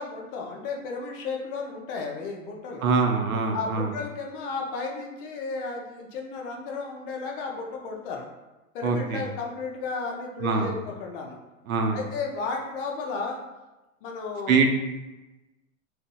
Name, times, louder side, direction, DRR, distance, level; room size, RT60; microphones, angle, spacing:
voice 1, 0.0-2.9 3.5-8.3 8.7-11.4 11.9-13.4 14.0-14.6, left 4 dB, 40° left, 1 dB, 0.6 m, -33 dB
voice 2, 2.8-3.9 8.8-9.3 10.4-10.7 11.7-12.0 14.5-14.7, right 4 dB, 75° right, 3 dB, 0.7 m, -23 dB
3.7 x 2.7 x 2.2 m, 1.1 s
figure-of-eight pair, 105°, 42 cm